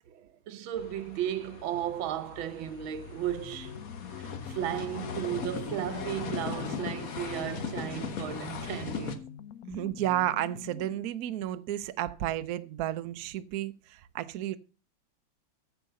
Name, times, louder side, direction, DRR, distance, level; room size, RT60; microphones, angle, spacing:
voice 1, 0.1-3.8 4.2-9.3, right 11 dB, 90° right, 1.6 m, -35 dB
sound 1, 0.8-9.2, left 5 dB, 50° left, 1.4 m, -38 dB
sound 2, 3.4-11.1, left 9 dB, 70° left, 0.9 m, -46 dB
voice 2, 9.7-14.6, right 13 dB, 60° right, 1.0 m, -32 dB
9.5 x 6.7 x 6.6 m
omnidirectional pair, 2.1 m